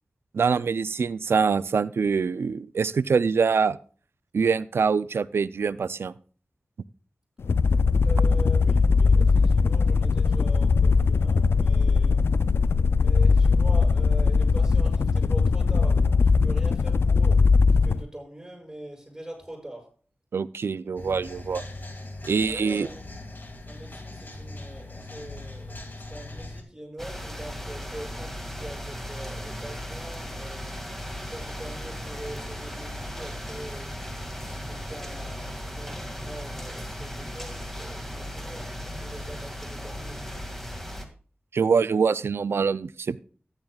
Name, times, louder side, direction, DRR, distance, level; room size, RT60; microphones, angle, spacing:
voice 1, 0.3-3.8 4.3-6.1 20.3-21.6 22.2-22.9 41.5-43.2, right 5 dB, 85° right, 17 dB, 0.4 m, -24 dB
sound 1, 7.4-18.0, left 4 dB, 85° left, 0.4 m, -20 dB
voice 2, 8.0-12.2 12.9-19.9 22.4-23.0 23.7-30.8 31.2-34.0 34.4-40.3, right 1 dB, 10° right, 0 dB, 6.6 m, -42 dB
sound 2, 21.0-26.6, left 2 dB, 55° left, 2.2 m, -40 dB
sound 3, 27.0-41.1, equal, 5° left, 2.1 m, -36 dB
14.0 x 10.5 x 2.4 m, 0.41 s
cardioid pair, 50°, 4 cm